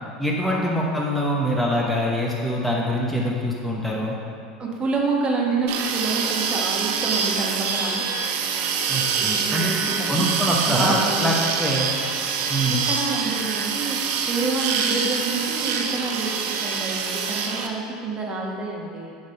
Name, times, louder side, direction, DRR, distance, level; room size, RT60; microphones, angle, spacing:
voice 1, 0.2-4.1 8.9-9.7 10.1-11.9 12.5-12.8, equal, 5° left, -3 dB, 0.9 m, -24 dB
voice 2, 4.6-8.1 9.2-11.3 12.7-19.1, right 3 dB, 30° right, -1 dB, 1.3 m, -28 dB
sound 1, 5.7-17.7, right 6 dB, 55° right, 0.6 m, -25 dB
7.2 x 4.0 x 5.2 m, 2.3 s
hypercardioid pair, 85°, 3 cm